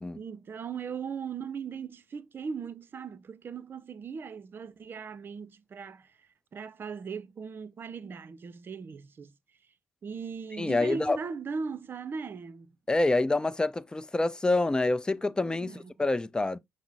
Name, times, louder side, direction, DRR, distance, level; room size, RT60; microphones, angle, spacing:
voice 1, 0.2-9.3 10.0-12.7 15.6-15.9, right 5 dB, 50° right, 0.6 m, -38 dB
voice 2, 10.6-11.2 12.9-16.6, left 2 dB, 15° left, 0.5 m, -27 dB
5.5 x 2.0 x 4.7 m
supercardioid pair, 70°, 5 cm